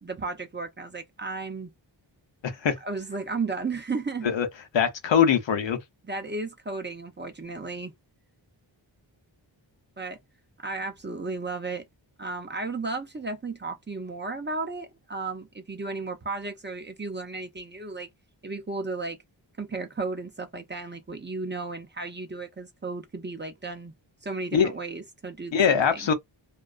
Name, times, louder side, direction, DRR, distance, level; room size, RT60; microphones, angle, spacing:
voice 1, 0.0-1.7 2.8-4.3 6.0-7.9 10.0-10.2 10.6-11.8 12.2-18.1 18.4-19.2 19.6-23.9 24.2-26.1, right 3 dB, 25° right, 0.5 m, -34 dB
voice 2, 2.4-2.8 4.2-4.5 4.7-5.8 24.5-24.7 25.5-26.1, left 7 dB, 65° left, 0.7 m, -22 dB
2.3 x 2.3 x 2.3 m
wide cardioid pair, 65°, 47 cm